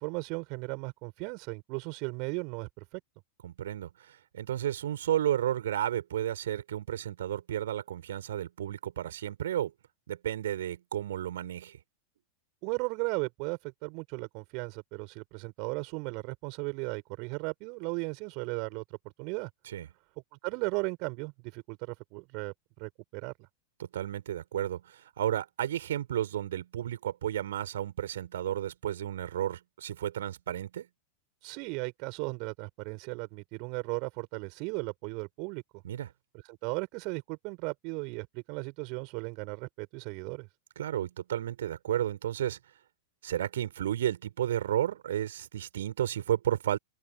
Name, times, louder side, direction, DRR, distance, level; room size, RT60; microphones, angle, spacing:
voice 1, 0.0-3.0 12.6-18.8 19.2-19.5 20.4-23.3 31.4-35.6 36.4-40.5, right 34 dB, 45° right, 4.6 m, -36 dB
voice 2, 3.4-9.7 10.1-11.8 19.7-19.9 23.8-30.9 35.8-36.1 40.8-42.6 43.2-46.8, right 11 dB, 60° right, 5.0 m, -32 dB
open air
figure-of-eight pair, 90°, 0 cm